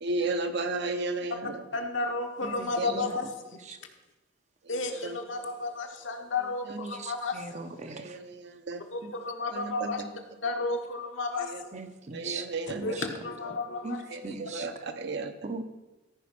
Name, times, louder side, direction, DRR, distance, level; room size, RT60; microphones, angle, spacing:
voice 1, 0.0-1.6 2.8-3.0 5.0-5.2 6.7-6.8 7.8-8.8 9.5-10.1 11.4-11.6 12.1-13.0 14.1-15.3, right 3 dB, 60° right, 8 dB, 0.9 m, -34 dB
voice 2, 1.7-3.6 4.7-7.7 8.9-10.0 10.4-11.8 12.8-14.0, left 3 dB, 75° left, 3 dB, 1.5 m, -32 dB
voice 3, 2.4-3.2 3.7-3.8 6.8-8.2 9.0-9.1 11.7-12.5 12.7-13.0 13.8-14.7 15.4-15.6, right 3 dB, 35° right, 9 dB, 0.7 m, -39 dB
14.0 x 5.2 x 5.9 m, 1.1 s
head